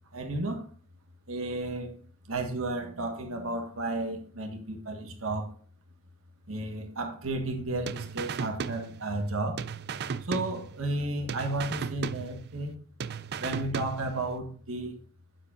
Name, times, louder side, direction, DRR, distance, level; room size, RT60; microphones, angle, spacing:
voice 1, 0.1-0.7 1.3-1.9 2.3-5.5 6.5-9.6 10.2-12.7 13.4-15.0, right 2 dB, 80° right, 1.5 m, -33 dB
sound 1, 7.9-9.3 9.6-11.0 11.3-12.7 13.0-14.3, right 6 dB, 50° right, 0.4 m, -36 dB
9.4 x 7.5 x 2.6 m
head